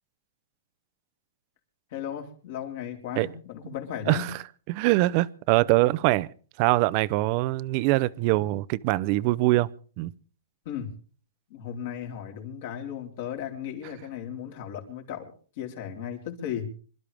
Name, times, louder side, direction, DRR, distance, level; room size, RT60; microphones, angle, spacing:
voice 1, 1.9-4.3 10.7-10.9 11.5-16.7, left 9 dB, 55° left, 4.0 m, -36 dB
voice 2, 4.1-4.4 4.7-6.3 6.6-9.7 10.0-10.1, right 19 dB, 40° right, 0.6 m, -23 dB
26.5 x 12.5 x 3.5 m
hypercardioid pair, 145°, 0 cm